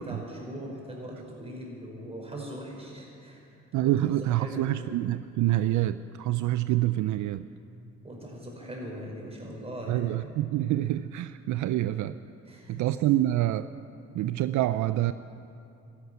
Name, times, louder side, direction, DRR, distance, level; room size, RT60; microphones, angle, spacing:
voice 1, 0.0-3.9 4.3-4.8 8.0-10.0 12.4-12.8, right 1 dB, 20° right, -1 dB, 4.9 m, -40 dB
voice 2, 3.7-7.4 9.9-12.2 12.7-13.7 14.2-15.1, right 14 dB, 75° right, 13 dB, 0.5 m, -26 dB
13.0 x 11.5 x 9.3 m, 2.6 s
cardioid pair, 90°, 30 cm